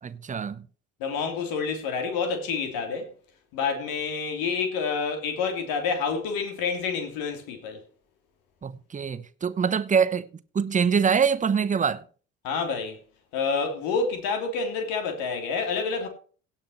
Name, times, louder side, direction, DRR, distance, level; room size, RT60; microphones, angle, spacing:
voice 1, 0.0-0.7 8.6-10.3 10.5-12.0, right 6 dB, 20° right, 0.8 m, -24 dB
voice 2, 1.0-3.1 3.5-7.8 12.4-13.0 13.3-16.1, left 5 dB, 60° left, 3.0 m, -28 dB
17.0 x 5.9 x 4.3 m
figure-of-eight pair, 60°, 39 cm